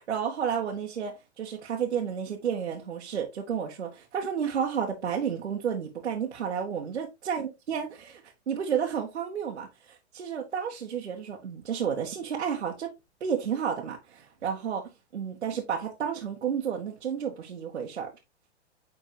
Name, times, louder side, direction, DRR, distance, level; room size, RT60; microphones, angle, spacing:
voice 1, 0.0-8.2 8.5-12.9 13.2-14.8 15.1-18.1, right 7 dB, 80° right, 1.6 m, -31 dB
9.8 x 3.9 x 3.0 m
hypercardioid pair, 115°, 34 cm